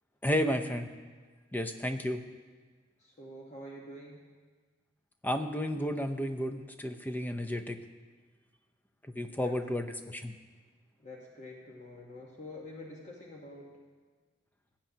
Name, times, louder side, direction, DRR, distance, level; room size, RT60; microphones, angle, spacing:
voice 1, 0.2-0.9 1.5-2.2 5.2-7.8 9.2-10.3, equal, 10° left, 7 dB, 0.5 m, -32 dB
voice 2, 3.0-4.3 9.3-9.5 11.0-13.8, left 1 dB, 35° left, -2 dB, 1.0 m, -47 dB
17.5 x 8.7 x 2.8 m, 1.4 s
head